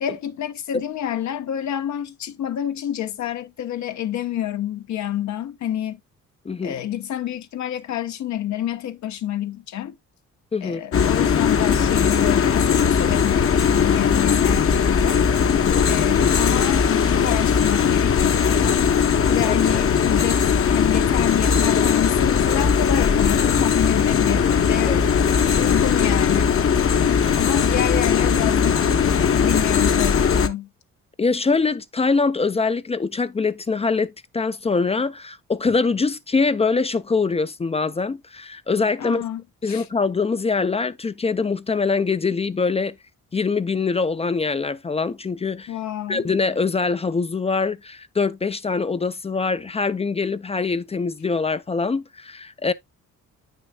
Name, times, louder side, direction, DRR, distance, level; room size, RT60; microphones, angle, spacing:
voice 1, 0.0-6.0 6.6-10.0 10.6-15.2 15.9-18.9 19.3-25.0 25.5-26.6 27.4-29.0 29.3-30.7 39.0-39.9 45.7-46.3, left 11 dB, 70° left, 1.0 m, -28 dB
voice 2, 6.5-6.8 10.5-10.8 15.5-15.9 19.4-19.8 24.9-25.3 27.3-27.4 31.2-39.3 39.6-43.0 43.3-45.7 46.1-52.7, left 4 dB, 20° left, 0.4 m, -23 dB
sound 1, 10.9-30.5, left 7 dB, 45° left, 1.0 m, -19 dB
8.8 x 6.4 x 2.3 m
cardioid pair, 90°, 30 cm